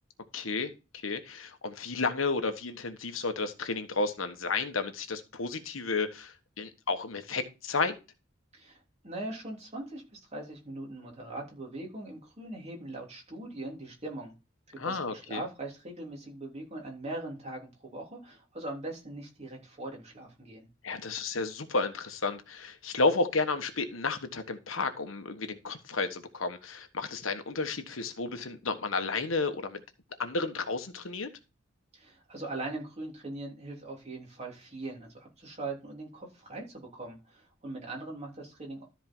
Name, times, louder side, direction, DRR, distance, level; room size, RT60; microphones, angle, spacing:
voice 1, 0.3-0.7 1.0-7.9 14.8-15.4 20.8-29.8 30.2-31.3, left 3 dB, 85° left, 8 dB, 1.3 m, -32 dB
voice 2, 8.5-14.3 14.7-20.7 31.9-38.9, right 2 dB, 35° right, -1 dB, 3.3 m, -41 dB
13.0 x 4.7 x 4.6 m, 0.29 s
head